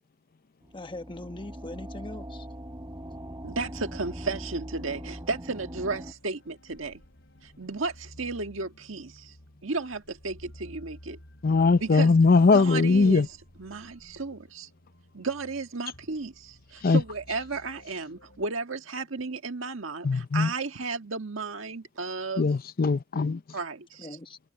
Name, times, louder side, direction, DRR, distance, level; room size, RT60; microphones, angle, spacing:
sound 1, 0.6-6.1, equal, 20° right, 4.8 m, -41 dB
voice 1, 0.7-2.5 24.0-24.4, left 2 dB, 25° left, 1.2 m, -40 dB
voice 2, 3.4-7.0 7.4-9.3 9.6-11.2 11.8-12.1 12.5-13.3 13.6-14.7 15.1-22.5 23.5-24.1, right 3 dB, 75° right, 1.6 m, -33 dB
sound 2, 4.8-18.5, equal, 65° left, 5.4 m, -53 dB
voice 3, 11.4-13.3 16.8-17.0 20.0-20.5 22.4-23.4, left 4 dB, 45° left, 0.5 m, -20 dB
head